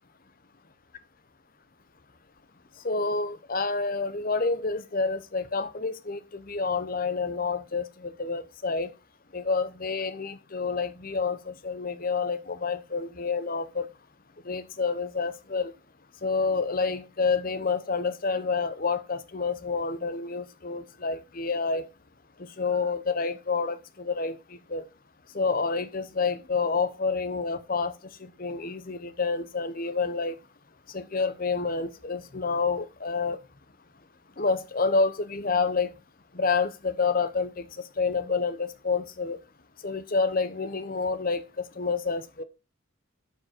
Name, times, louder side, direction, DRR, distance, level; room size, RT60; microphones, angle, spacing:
voice 1, 2.8-8.9 9.3-13.9 14.4-15.7 16.2-21.9 22.4-24.8 25.3-27.9 28.2-30.4 30.9-33.4 34.4-35.9 36.3-37.7 38.0-39.4 39.8-42.4, left 4 dB, 40° left, 0.8 m, -28 dB
11.5 x 4.8 x 4.5 m
head